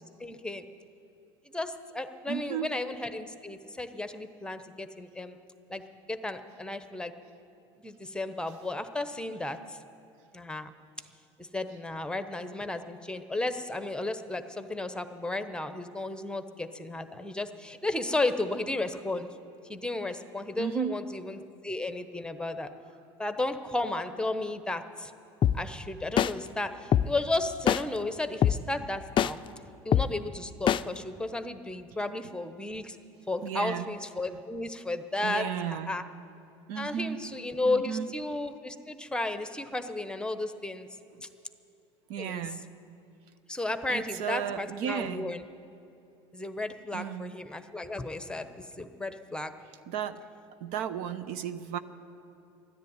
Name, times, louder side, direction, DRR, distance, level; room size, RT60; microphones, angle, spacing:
voice 1, 0.2-0.6 1.5-5.4 5.7-5.8 6.1-7.1 7.8-9.8 10.3-10.7 11.4-19.3 19.7-22.7 23.2-25.1 25.5-29.4 29.8-33.0 33.3-36.0 36.7-40.9 42.1-42.4 43.5-45.4 46.3-49.5, left 2 dB, 5° left, 9 dB, 1.0 m, -33 dB
voice 2, 2.3-2.7 20.6-21.0 33.4-33.9 35.2-35.9 36.7-37.2 37.6-38.1 42.1-42.7 43.9-45.3 46.9-47.3 49.9-50.2 50.6-51.8, right 9 dB, 70° right, 11 dB, 0.8 m, -34 dB
sound 1, 25.4-25.5 26.2-26.3 26.9-27.0 27.7-27.8 28.4-28.5 29.2-29.3 29.9-30.0 30.7-30.8, left 10 dB, 35° left, 0.4 m, -22 dB
13.5 x 10.5 x 9.6 m, 2.8 s
hypercardioid pair, 85°, 14 cm